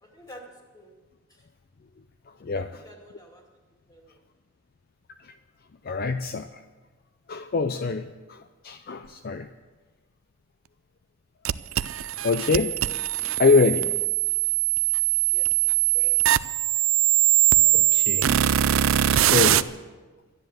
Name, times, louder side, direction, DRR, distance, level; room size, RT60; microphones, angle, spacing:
voice 1, 0.0-0.9 1.3-1.5 2.5-3.5 3.9-4.2 15.1-16.3, equal, 20° left, 1 dB, 2.4 m, -49 dB
voice 2, 2.3-2.8 5.2-5.3 5.8-6.6 7.3-9.5 12.2-12.8 13.3-13.9 17.7-18.3 19.1-19.7, left 4 dB, 50° left, 9 dB, 0.5 m, -25 dB
sound 1, 11.4-19.6, right 13 dB, 75° right, 0.4 m, -22 dB
12.5 x 10.0 x 7.7 m, 1.3 s
head